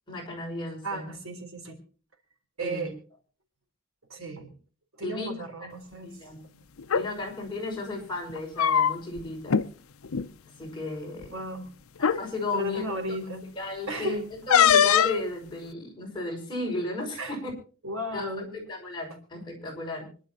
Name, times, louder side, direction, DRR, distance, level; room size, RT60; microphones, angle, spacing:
voice 1, 0.1-1.1 2.6-2.9 5.0-5.4 6.0-6.4 6.9-9.6 10.6-11.3 12.0-12.8 13.6-17.5 18.1-20.1, left 2 dB, 20° left, -2 dB, 6.0 m, -34 dB
voice 2, 0.8-1.8 2.6-2.9 4.1-4.5 5.0-6.1 6.4-7.0 11.3-11.7 12.5-13.4 13.9-14.2 17.2-17.4 17.8-18.7, right 1 dB, 80° right, 4 dB, 3.7 m, -34 dB
sound 1, 6.8-7.1 8.3-9.2 9.5-9.7 10.0-10.3 11.2-11.3 12.0-12.2 14.5-15.2, left 8 dB, 85° left, 0.6 m, -21 dB
25.5 x 11.5 x 3.0 m, 0.38 s
head